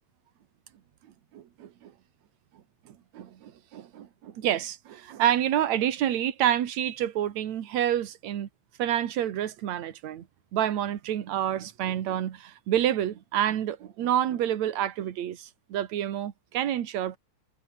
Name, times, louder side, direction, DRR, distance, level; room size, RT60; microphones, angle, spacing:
voice 1, 1.3-1.9 2.9-8.5 8.8-10.2 10.5-17.2, right 11 dB, 70° right, 2.9 m, -28 dB
omnidirectional pair, 3.4 m